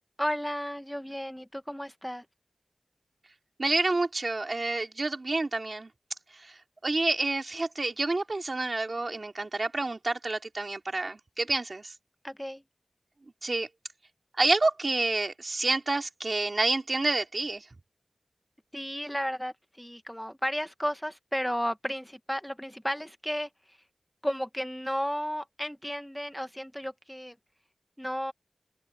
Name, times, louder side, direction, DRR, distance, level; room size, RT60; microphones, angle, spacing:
voice 1, 0.2-2.2 12.2-12.6 18.7-23.8 24.2-27.4 28.0-28.3, equal, 5° left, 0.9 m, -33 dB
voice 2, 3.6-5.9 6.3-6.6 6.8-11.9 13.4-13.7 14.4-17.7, right 2 dB, 50° right, 2.8 m, -28 dB
open air
wide cardioid pair, 80°, 0 cm